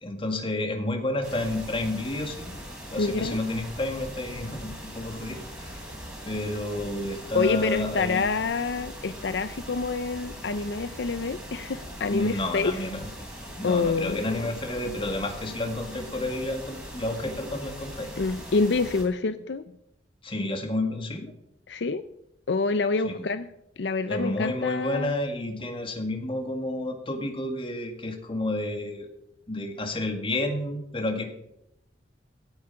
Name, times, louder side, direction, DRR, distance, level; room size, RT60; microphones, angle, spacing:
voice 1, 0.0-2.5 2.9-5.8 6.3-8.2 12.1-13.1 13.6-18.1 20.2-21.3 23.0-23.3 24.1-29.1 29.5-31.3, left 1 dB, 30° left, 5 dB, 1.9 m, -30 dB
sound 1, 1.2-19.0, equal, 5° right, 3.7 m, -41 dB
voice 2, 3.0-3.4 7.3-12.8 13.6-14.5 18.2-19.7 21.7-22.0 22.5-23.5 23.8-25.1, left 4 dB, 70° left, 12 dB, 0.5 m, -27 dB
16.5 x 8.8 x 5.7 m, 0.82 s
head